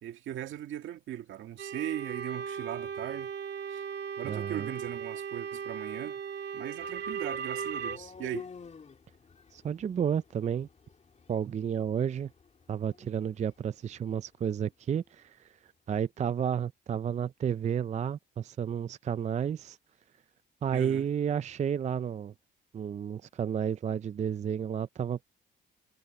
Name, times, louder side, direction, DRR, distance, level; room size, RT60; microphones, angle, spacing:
voice 1, 0.0-3.3 3.7-3.8 4.2-6.2 6.5-8.5 20.7-21.1, right 11 dB, 75° right, 1.9 m, -39 dB
sound 1, 1.6-8.0, right 6 dB, 60° right, 2.5 m, -37 dB
voice 2, 4.2-4.7 9.5-10.7 11.3-12.3 12.7-15.6 15.9-19.8 20.6-22.3 22.7-25.2, right 8 dB, 35° right, 0.4 m, -31 dB
sound 2, 6.8-14.7, left 5 dB, 35° left, 2.5 m, -51 dB
cardioid pair, 90°, 20 cm